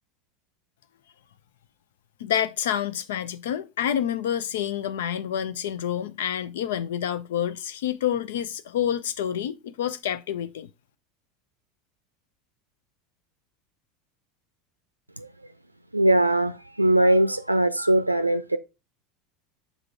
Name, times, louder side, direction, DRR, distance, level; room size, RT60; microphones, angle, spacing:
voice 1, 2.2-10.7, left 10 dB, 60° left, 0.5 m, -28 dB
voice 2, 15.9-18.6, right 1 dB, 85° right, 0.5 m, -21 dB
6.9 x 3.7 x 4.5 m
figure-of-eight pair, 75°, 0 cm